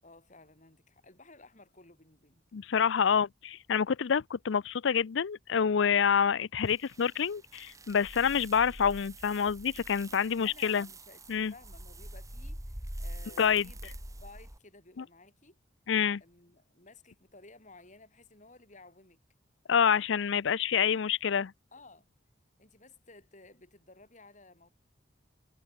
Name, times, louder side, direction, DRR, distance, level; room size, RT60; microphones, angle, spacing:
voice 1, 0.0-2.4 10.4-11.2 11.5-13.9 14.2-15.6 16.2-19.2 21.7-22.1 22.6-24.7, left 2 dB, 40° left, 7.9 m, -55 dB
voice 2, 2.5-10.9 11.3-11.5 13.4-13.7 15.0-15.1 15.9-16.2 19.7-21.5, left 7 dB, 75° left, 0.5 m, -27 dB
sound 1, 6.7-14.6, right 1 dB, 15° right, 2.4 m, -45 dB
head